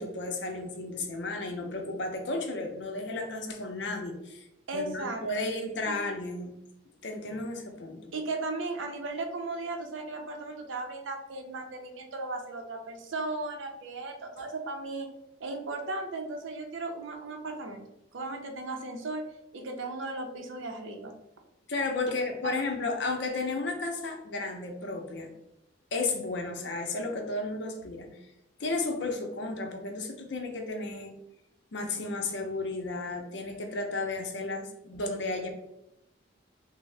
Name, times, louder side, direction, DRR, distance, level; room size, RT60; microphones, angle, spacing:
voice 1, 0.0-4.4 4.7-6.5 7.0-8.0 21.7-25.3 25.9-28.1 28.6-31.1 31.7-35.5, left 3 dB, 65° left, 3 dB, 0.6 m, -33 dB
voice 2, 4.7-5.5 5.9-6.1 8.1-15.1 15.4-17.8 18.1-19.2 19.5-21.1 22.4-22.5, right 2 dB, 85° right, 4 dB, 0.5 m, -36 dB
3.5 x 2.0 x 3.2 m, 0.88 s
head